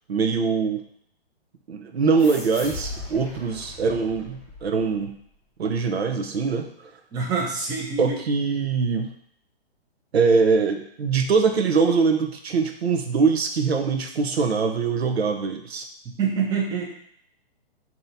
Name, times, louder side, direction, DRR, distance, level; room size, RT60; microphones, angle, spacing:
voice 1, 0.1-0.8 1.7-5.2 5.6-6.9 8.0-9.1 10.1-15.9, right 5 dB, 80° right, 4 dB, 0.7 m, -23 dB
sound 1, 2.2-5.2, left 2 dB, 10° left, 0.9 m, -38 dB
voice 2, 7.1-8.2 16.0-16.8, right 5 dB, 10° right, -2 dB, 0.6 m, -26 dB
3.7 x 2.9 x 4.0 m, 0.67 s
hypercardioid pair, 135°, 31 cm